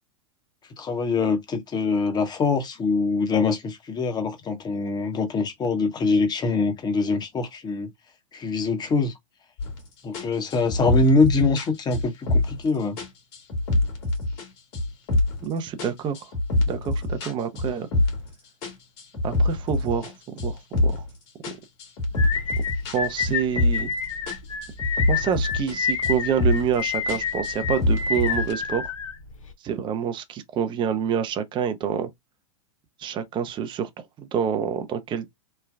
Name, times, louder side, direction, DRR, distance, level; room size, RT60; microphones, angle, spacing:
voice 1, 0.8-7.9 8.3-9.1 10.0-13.0, left 3 dB, 25° left, 1.0 m, -24 dB
sound 1, 9.6-9.8 10.1-12.7 13.0-14.5 14.7-15.5 15.8-18.3 18.6-21.1 21.4-24.0 24.3-25.8 26.0-26.7 27.1-28.5, left 2 dB, 55° left, 1.6 m, -25 dB
voice 2, 15.4-16.2 16.7-17.9 19.2-21.0 22.9-23.9 25.1-28.8 29.6-32.1 33.0-35.3, right 8 dB, 30° right, 0.6 m, -27 dB
sound 2, 22.2-29.5, left 6 dB, 90° left, 0.7 m, -29 dB
3.2 x 2.3 x 2.2 m
hypercardioid pair, 105°, 17 cm